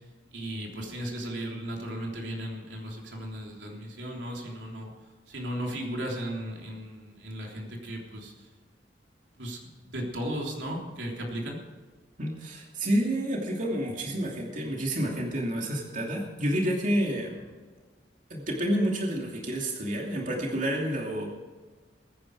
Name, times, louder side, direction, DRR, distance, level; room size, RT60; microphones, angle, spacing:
voice 1, 0.3-4.9 5.3-8.3 9.4-11.6, equal, 90° right, 0 dB, 3.4 m, -36 dB
voice 2, 12.2-17.4 18.3-21.3, equal, 45° right, -1 dB, 2.7 m, -29 dB
21.5 x 10.0 x 4.8 m, 1.4 s
head